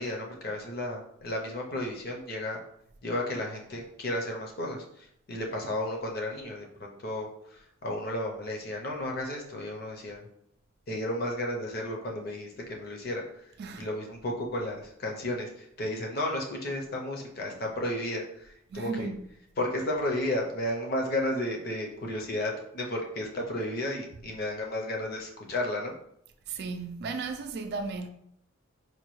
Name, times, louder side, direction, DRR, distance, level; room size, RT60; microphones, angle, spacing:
voice 1, 0.0-2.6 3.0-10.3 10.9-13.5 13.8-19.1 19.6-25.9, left 1 dB, 45° left, 0.6 m, -33 dB
voice 2, 18.7-19.3 24.2-24.3 26.5-28.1, right 4 dB, 50° right, 0.3 m, -35 dB
4.2 x 2.2 x 3.1 m
head